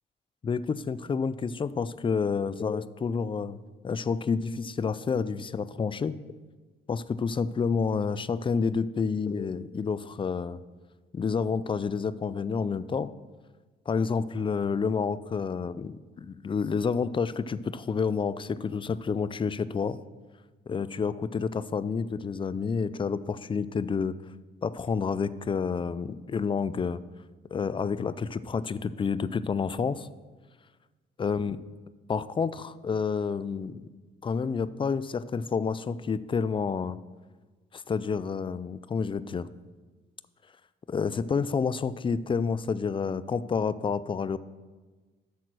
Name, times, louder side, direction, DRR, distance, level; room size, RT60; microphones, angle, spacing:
voice 1, 0.4-3.6 3.8-6.2 6.9-10.6 11.1-13.1 13.9-20.0 20.7-24.2 24.6-27.0 27.5-30.1 31.2-31.6 32.1-33.9 34.2-37.0 37.7-39.5 40.9-44.4, left 5 dB, 25° left, 16 dB, 0.4 m, -29 dB
8.3 x 6.5 x 6.2 m, 1.3 s
cardioid pair, 90°, 20 cm